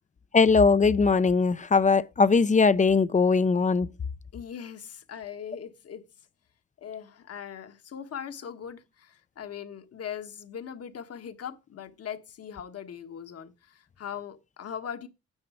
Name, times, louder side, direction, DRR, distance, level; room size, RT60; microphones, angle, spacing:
voice 1, 0.3-3.9, left 4 dB, 25° left, 0.6 m, -20 dB
voice 2, 4.3-6.1 6.8-15.1, left 8 dB, 55° left, 1.4 m, -40 dB
9.7 x 7.4 x 4.9 m
cardioid pair, 90°, 30 cm